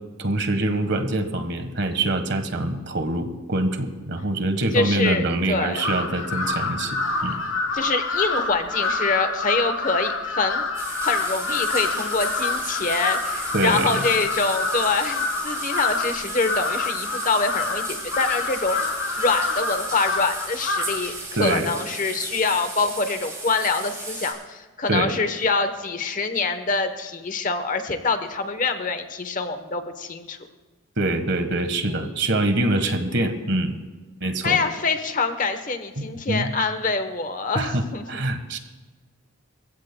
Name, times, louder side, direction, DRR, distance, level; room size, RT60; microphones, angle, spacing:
voice 1, 0.2-7.4 13.5-14.0 21.3-21.7 24.9-25.1 31.0-33.7 34.2-34.6 36.0-36.5 37.5-38.6, right 2 dB, 55° right, 8 dB, 1.3 m, -24 dB
voice 2, 4.7-5.9 7.7-10.6 11.0-18.8 19.2-30.4 31.9-32.0 34.4-38.2, left 4 dB, 40° left, 9 dB, 0.9 m, -25 dB
Crow, 5.7-21.1, left 3 dB, 75° left, 2.7 m, -27 dB
sound 1, 10.7-24.3, right 3 dB, 15° right, 6.0 m, -35 dB
29.0 x 15.5 x 2.2 m, 1.3 s
head